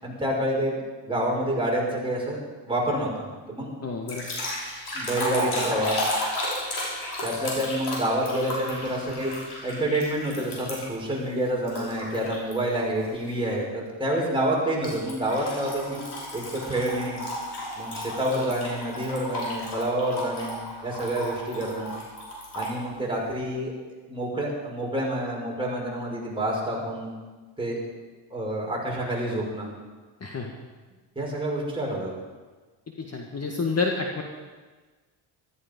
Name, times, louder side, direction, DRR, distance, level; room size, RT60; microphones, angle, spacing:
voice 1, 0.0-3.7 4.9-6.1 7.2-9.3 9.6-16.0 16.3-17.2 17.7-20.6 20.8-21.9 22.5-23.7 24.1-27.1 27.6-27.8 28.3-29.7 31.2-32.1, right 1 dB, 10° right, -3 dB, 5.6 m, -28 dB
voice 2, 3.8-4.4 30.2-30.5 33.0-34.2, left 4 dB, 30° left, 1 dB, 1.8 m, -29 dB
sound 1, 4.1-11.0 11.7-12.5 13.0-13.3 14.8-22.8, left 1 dB, 50° left, 5.6 m, -33 dB
14.0 x 13.5 x 5.4 m, 1.3 s
cardioid pair, 85°, 49 cm